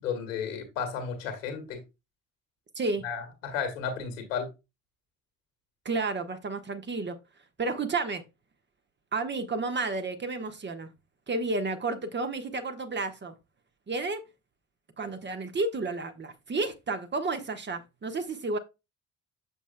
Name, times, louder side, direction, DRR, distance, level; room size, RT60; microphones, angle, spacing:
voice 1, 0.0-1.8 3.0-4.5, left 6 dB, 75° left, 2.0 m, -33 dB
voice 2, 5.8-7.2 7.6-8.2 9.1-10.9 11.3-13.3 13.9-14.2 15.0-18.6, right 3 dB, 30° right, 1.3 m, -31 dB
8.3 x 7.2 x 2.2 m
figure-of-eight pair, 45°, 39 cm